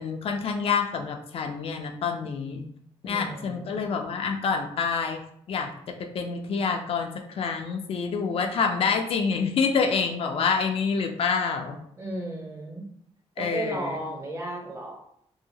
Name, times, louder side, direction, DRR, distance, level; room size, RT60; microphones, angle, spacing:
voice 1, 0.0-2.6 3.0-5.2 5.5-5.7 6.1-11.8 13.4-14.0, left 5 dB, 60° left, 4 dB, 0.4 m, -27 dB
voice 2, 3.0-3.8 12.0-12.9 13.4-15.2, right 2 dB, 25° right, 1 dB, 0.6 m, -35 dB
2.7 x 2.7 x 2.7 m, 0.69 s
wide cardioid pair, 145°, 11 cm